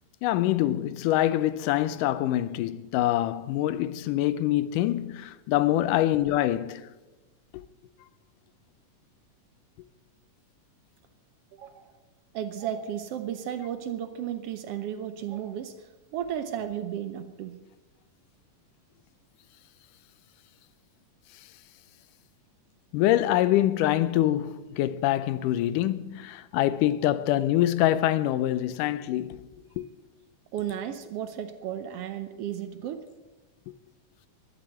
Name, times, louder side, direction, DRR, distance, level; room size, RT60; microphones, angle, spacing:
voice 1, 0.2-6.9 7.5-7.6 22.9-29.9, left 13 dB, 85° left, 2.2 m, -25 dB
voice 2, 11.5-11.9 12.3-17.6 30.5-33.1, right 10 dB, 85° right, 1.3 m, -34 dB
12.0 x 12.0 x 7.8 m
omnidirectional pair, 3.7 m